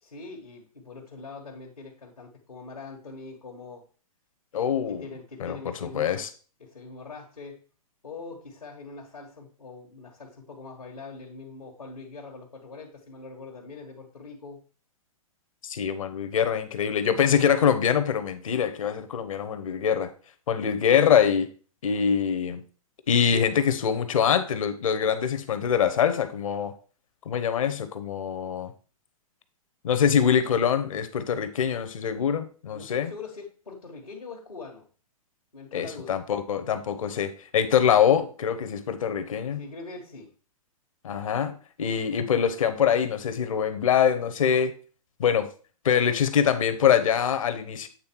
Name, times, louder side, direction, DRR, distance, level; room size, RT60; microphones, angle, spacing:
voice 1, 0.0-3.8 4.6-6.3 6.6-7.6 8.0-14.6 32.7-34.9 35.5-36.2 39.6-40.3, left 3 dB, 85° left, -2 dB, 1.6 m, -43 dB
voice 2, 4.5-5.0 5.4-6.3 15.6-20.1 20.5-21.5 21.8-22.6 23.1-26.7 27.3-28.7 29.8-33.1 35.7-39.6 41.0-44.7 45.2-45.5 45.8-47.9, left 8 dB, 65° left, 11 dB, 1.0 m, -24 dB
8.6 x 3.4 x 4.5 m, 0.39 s
figure-of-eight pair, 115°, 19 cm